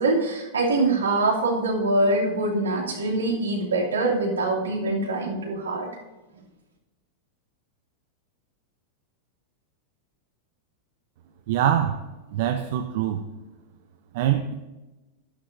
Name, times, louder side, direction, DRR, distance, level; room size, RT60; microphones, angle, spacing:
voice 1, 0.0-5.9, right 2 dB, 80° right, -3 dB, 2.8 m, -24 dB
voice 2, 11.5-12.0 12.3-13.2 14.1-14.5, right 10 dB, 60° right, 6 dB, 0.7 m, -23 dB
12.5 x 11.5 x 2.7 m, 1.1 s
hypercardioid pair, 95°, 0 cm